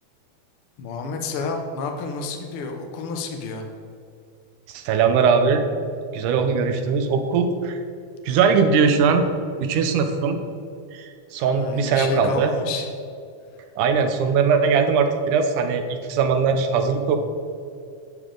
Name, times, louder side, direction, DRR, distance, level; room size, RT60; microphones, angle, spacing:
voice 1, 0.8-3.6 11.5-12.9, left 4 dB, 70° left, 3 dB, 1.3 m, -30 dB
voice 2, 4.7-5.6 6.1-7.8 8.3-9.3 9.6-10.4 10.9-12.5 13.8-17.2, right 5 dB, 85° right, 6 dB, 2.3 m, -20 dB
12.0 x 7.0 x 3.8 m, 2.4 s
omnidirectional pair, 3.6 m